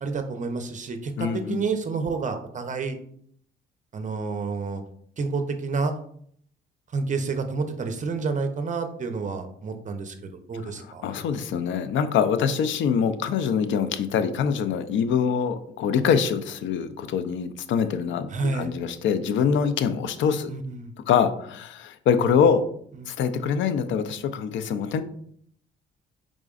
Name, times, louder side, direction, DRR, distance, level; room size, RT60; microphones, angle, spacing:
voice 1, 0.0-3.0 3.9-4.8 5.2-5.9 6.9-11.1 18.3-18.7 20.5-20.9 23.0-23.1, right 4 dB, 40° right, 7 dB, 0.7 m, -29 dB
voice 2, 1.2-1.6 11.0-20.5 21.1-22.6 23.1-25.0, left 7 dB, 75° left, 10 dB, 0.5 m, -24 dB
4.9 x 3.7 x 2.5 m, 0.64 s
cardioid pair, 90°, 20 cm